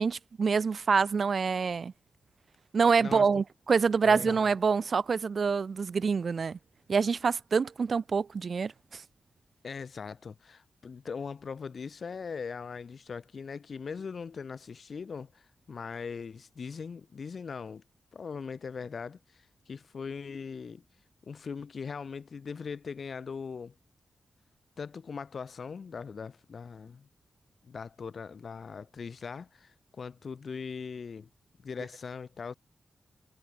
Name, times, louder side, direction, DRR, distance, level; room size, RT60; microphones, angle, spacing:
voice 1, 0.0-1.9 2.7-6.6 6.9-9.0, right 5 dB, 55° right, 0.8 m, -26 dB
voice 2, 3.0-3.3 4.0-4.4 9.6-17.8 18.1-20.8 21.2-23.7 24.8-27.1 27.6-31.3 31.6-32.5, left 5 dB, 55° left, 4.6 m, -40 dB
wide cardioid pair, 115°, 0 cm